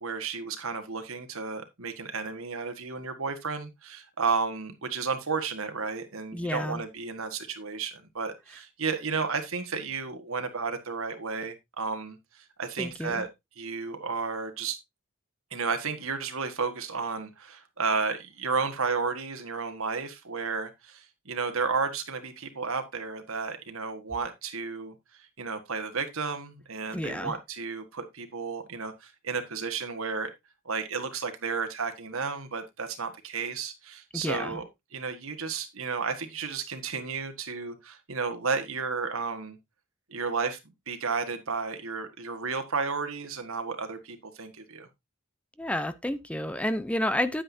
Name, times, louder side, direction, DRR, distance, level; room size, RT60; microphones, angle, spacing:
voice 1, 0.0-13.3 13.6-14.8 15.5-24.9 25.4-30.3 30.6-34.7 34.9-39.6 40.1-40.6 40.9-44.9, right 5 dB, 80° right, 1.7 m, -32 dB
voice 2, 6.3-6.8 12.8-13.3 26.9-27.3 34.1-34.6 45.6-47.4, left 1 dB, 5° left, 0.6 m, -30 dB
10.0 x 8.8 x 2.7 m
head